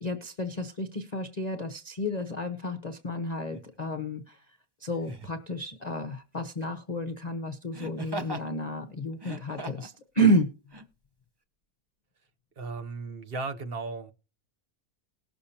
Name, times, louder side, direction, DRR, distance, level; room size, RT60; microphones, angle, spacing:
voice 1, 0.0-4.4 4.8-10.5, right 1 dB, 35° left, 0.8 m, -30 dB
Laughter, 3.5-3.7 5.0-5.4 7.7-8.5 9.1-10.0 10.7-10.8, right 2 dB, 20° right, 0.7 m, -38 dB
voice 2, 12.6-14.1, right 3 dB, 45° right, 0.9 m, -35 dB
19.5 x 6.7 x 2.8 m
omnidirectional pair, 1.6 m